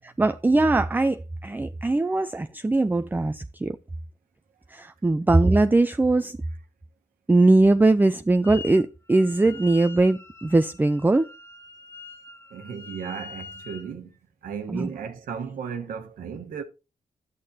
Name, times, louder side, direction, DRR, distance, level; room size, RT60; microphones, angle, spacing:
voice 1, 0.2-3.8 4.7-6.4 7.3-11.3 14.7-14.9, right 2 dB, 15° right, 0.5 m, -21 dB
Wind instrument woodwind instrument, 8.4-8.8 9.1-13.9, left 4 dB, 20° left, 1.5 m, -44 dB
voice 2, 12.5-14.1 14.4-16.6, right 7 dB, 90° right, 1.3 m, -35 dB
11.0 x 8.5 x 2.8 m
cardioid pair, 70°, 14 cm